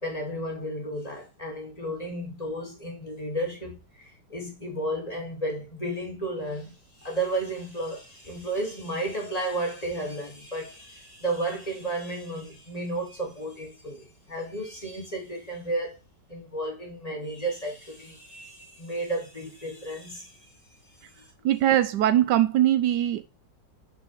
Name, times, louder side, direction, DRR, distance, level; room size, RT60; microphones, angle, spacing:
voice 1, 0.0-16.0 16.3-20.4 21.1-21.3, right 1 dB, 20° left, 2.1 m, -33 dB
voice 2, 21.4-23.2, right 12 dB, 75° right, 1.2 m, -21 dB
6.1 x 4.2 x 6.2 m
omnidirectional pair, 1.9 m